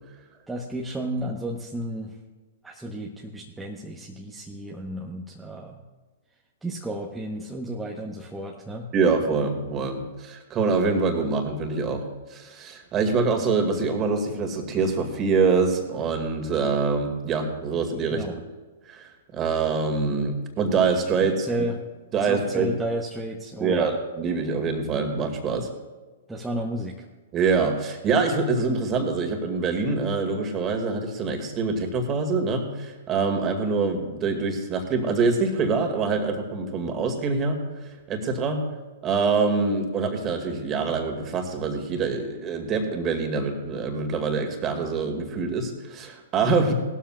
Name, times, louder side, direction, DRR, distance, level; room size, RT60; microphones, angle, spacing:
voice 1, 0.5-2.1 2.6-5.8 6.6-8.9 18.1-18.4 21.4-21.8 22.2-23.9 26.3-26.9, right 1 dB, 5° right, -2 dB, 1.1 m, -32 dB
voice 2, 8.9-12.1 12.3-18.2 18.9-21.7 22.1-22.7 23.6-25.7 27.3-37.6 38.1-38.6 39.0-46.7, right 4 dB, 25° right, 4 dB, 2.1 m, -25 dB
18.5 x 13.0 x 2.4 m, 1.3 s
figure-of-eight pair, 110°, 0 cm